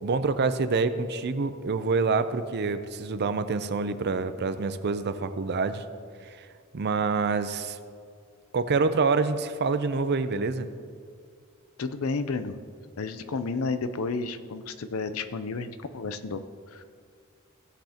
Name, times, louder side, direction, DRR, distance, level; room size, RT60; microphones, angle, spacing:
voice 1, 0.0-5.8 6.3-6.5 6.7-7.8 8.5-10.7, right 4 dB, 50° right, 11 dB, 0.5 m, -26 dB
voice 2, 11.8-12.6 13.0-16.4 16.7-16.8, left 4 dB, 70° left, 11 dB, 0.6 m, -31 dB
16.5 x 7.8 x 2.9 m, 2.2 s
head